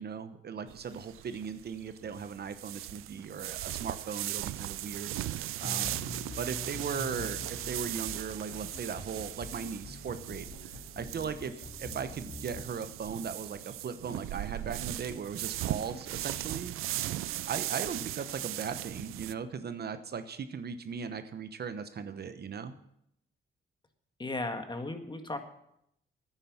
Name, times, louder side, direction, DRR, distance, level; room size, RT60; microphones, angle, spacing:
voice 1, 0.0-6.0 6.4-17.0 17.5-22.7, right 6 dB, 50° right, 10 dB, 1.0 m, -38 dB
sound 1, 0.7-19.3, right 14 dB, 85° right, 0.5 m, -38 dB
sound 2, 5.6-12.6, left 3 dB, 60° left, 2.7 m, -45 dB
voice 2, 24.2-25.4, left 2 dB, 20° left, 6 dB, 1.8 m, -35 dB
10.0 x 10.0 x 7.1 m, 0.75 s
cardioid pair, 90°, 21 cm